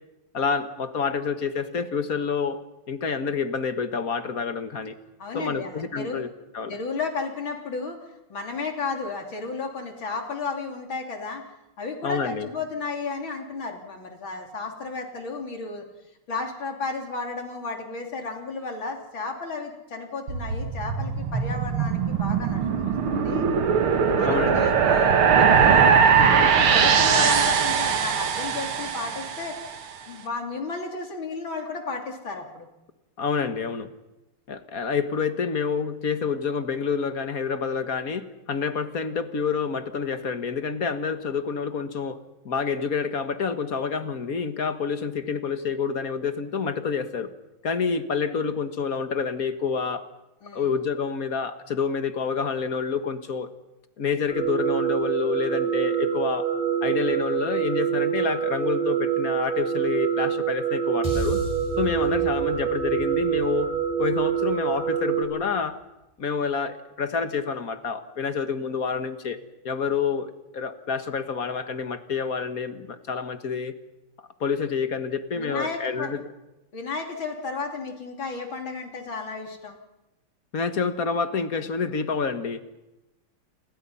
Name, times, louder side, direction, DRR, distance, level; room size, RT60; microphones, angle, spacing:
voice 1, 0.3-2.6 2.9-4.9 5.3-6.3 6.5-6.8 12.0-12.5 24.2-24.7 33.2-33.9 34.5-42.2 42.5-47.3 47.6-50.1 50.5-53.5 54.0-56.5 56.8-61.4 61.8-63.7 64.0-65.8 66.2-69.4 69.6-73.7 74.4-76.2 80.5-82.6, left 5 dB, 45° left, 9 dB, 1.8 m, -28 dB
voice 2, 5.2-6.2 6.7-8.0 8.3-11.4 11.8-15.8 16.3-23.5 24.2-29.6 30.1-32.7 50.4-50.7 75.4-76.1 76.7-79.8, left 4 dB, 70° left, 3 dB, 3.9 m, -33 dB
sound 1, 20.3-29.6, right 6 dB, 80° right, 2.5 m, -21 dB
sound 2, 54.3-65.2, right 9 dB, 40° right, 4.6 m, -26 dB
sound 3, 61.0-65.4, left 2 dB, 10° left, 5.7 m, -36 dB
29.0 x 22.0 x 5.7 m, 0.98 s
omnidirectional pair, 2.3 m